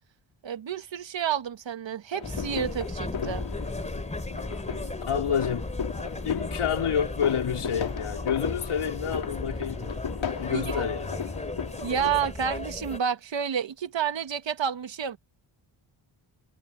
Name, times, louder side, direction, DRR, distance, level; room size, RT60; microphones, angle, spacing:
voice 1, 0.4-3.4 10.5-10.8 11.8-15.2, right 8 dB, 60° right, 1.6 m, -30 dB
sound 1, 2.1-12.1, left 7 dB, 65° left, 2.4 m, -36 dB
sound 2, 2.2-13.0, left 2 dB, 15° left, 3.4 m, -35 dB
voice 2, 5.1-5.8 6.2-9.9 10.4-11.2, left 8 dB, 85° left, 4.3 m, -29 dB
wide cardioid pair, 140°, 49 cm